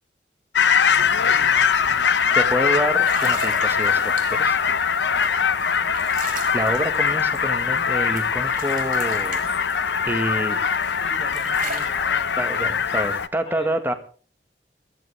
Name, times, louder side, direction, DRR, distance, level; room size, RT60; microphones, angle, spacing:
sound 1, 0.5-13.3, left 6 dB, 75° left, 0.8 m, -21 dB
voice 1, 0.9-2.2 5.0-5.7 10.3-10.7 11.0-13.0 13.4-14.0, equal, 35° left, 3 dB, 3.7 m, -43 dB
sound 2, 1.0-1.1 1.4-1.7 2.4-2.5 2.9-4.6 5.2-7.9 8.2-10.2 10.7-12.0, right 5 dB, 45° right, 3.7 m, -38 dB
voice 2, 2.4-4.6 6.5-9.5 10.0-10.5 12.4-13.9, right 1 dB, 10° right, 6 dB, 1.8 m, -27 dB
21.5 x 13.5 x 3.4 m, 0.41 s
head